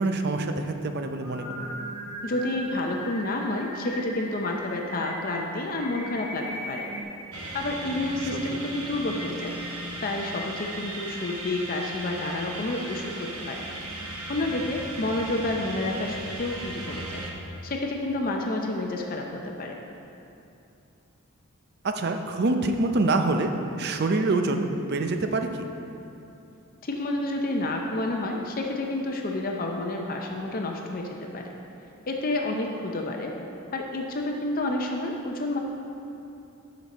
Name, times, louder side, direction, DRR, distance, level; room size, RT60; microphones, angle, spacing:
voice 1, 0.0-1.7 8.5-8.6 21.8-23.5 23.8-25.7, right 2 dB, 50° right, 6 dB, 0.5 m, -26 dB
Singing, 1.1-7.0, right 1 dB, 15° right, 1.9 m, -38 dB
voice 2, 2.2-6.9 7.5-9.5 10.0-13.7 14.3-17.2 17.6-19.8 26.8-31.5 32.1-33.3 33.7-35.6, left 2 dB, 40° left, 1 dB, 0.6 m, -29 dB
sound 1, 7.3-17.3, right 1 dB, 85° right, 1.1 m, -36 dB
12.0 x 5.2 x 4.2 m, 2.7 s
head